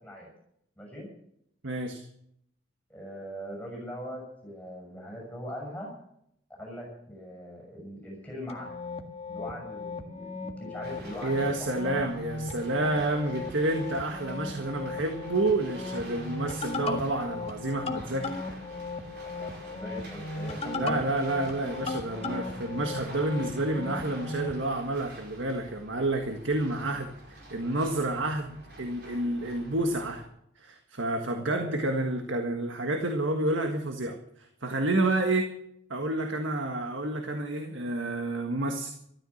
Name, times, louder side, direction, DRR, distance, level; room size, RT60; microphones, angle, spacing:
voice 1, 0.8-1.1 2.9-5.9 6.6-8.8 9.3-12.1 12.8-12.9 19.2-21.1 31.4-31.7, equal, 5° left, -2 dB, 6.6 m, -41 dB
voice 2, 1.6-2.0 11.2-18.4 20.6-30.2 30.6-35.5 35.9-38.9, right 2 dB, 75° right, 4 dB, 1.6 m, -29 dB
sound 1, 8.5-24.6, left 3 dB, 30° left, 1.7 m, -37 dB
sound 2, 10.8-30.3, right 1 dB, 55° right, 4.9 m, -48 dB
14.0 x 13.0 x 7.2 m, 0.73 s
head